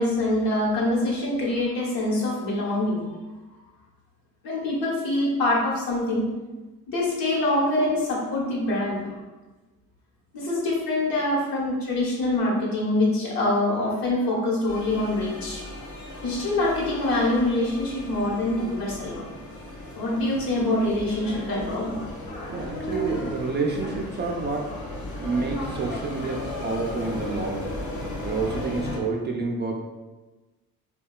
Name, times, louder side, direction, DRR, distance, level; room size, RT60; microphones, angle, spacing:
voice 1, 0.0-3.2 4.4-6.2 6.9-9.1 10.3-15.6 16.0-19.4 19.9-21.9, left 1 dB, 65° left, -4 dB, 1.0 m, -25 dB
sound 1, 14.7-29.0, left 1 dB, 50° left, 0.7 m, -35 dB
voice 2, 22.5-24.7 25.2-27.8 28.2-29.7, right 3 dB, 30° right, 0 dB, 0.4 m, -28 dB
2.7 x 2.2 x 2.3 m, 1.2 s
supercardioid pair, 60°, 38 cm